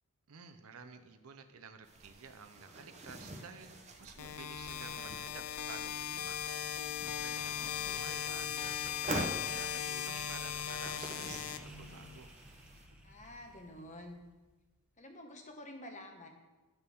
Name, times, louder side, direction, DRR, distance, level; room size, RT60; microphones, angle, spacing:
voice 1, 0.3-6.4 7.0-12.3, right 5 dB, 70° right, 8 dB, 0.7 m, -52 dB
sound 1, 1.8-12.9, right 1 dB, 30° right, 0.8 m, -46 dB
sound 2, 4.2-12.2, left 9 dB, 65° left, 0.4 m, -38 dB
sound 3, 5.8-14.5, right 1 dB, 5° right, 1.0 m, -53 dB
voice 2, 13.0-14.2 15.0-16.3, left 1 dB, 35° left, 3 dB, 1.1 m, -49 dB
11.0 x 6.8 x 3.5 m, 1.2 s
head